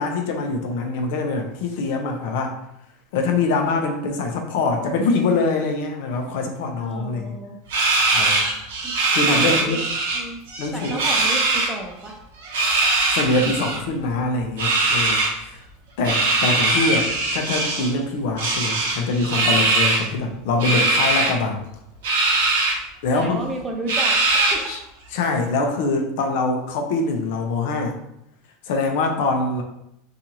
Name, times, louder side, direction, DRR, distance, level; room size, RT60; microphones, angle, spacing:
voice 1, 0.0-2.5 3.1-7.4 8.1-8.5 9.1-9.8 10.6-11.0 13.1-15.6 16.0-21.7 23.0-23.4 24.7-24.8 25.1-28.0 28.6-29.6, left 3 dB, 70° left, 3 dB, 0.5 m, -24 dB
voice 2, 6.8-7.6 8.8-8.9 9.3-9.8 10.1-10.4 10.7-12.2 23.1-24.7, right 2 dB, 15° right, 1 dB, 0.6 m, -32 dB
sound 1, 7.7-10.2 10.5-11.7 12.4-13.8 14.6-15.3 16.0-17.9 18.4-20.1 20.6-21.3 22.0-22.7 23.2-23.3 23.9-24.8, right 2 dB, 80° right, 0.7 m, -21 dB
2.7 x 2.4 x 2.8 m, 0.77 s
hypercardioid pair, 110°, 0 cm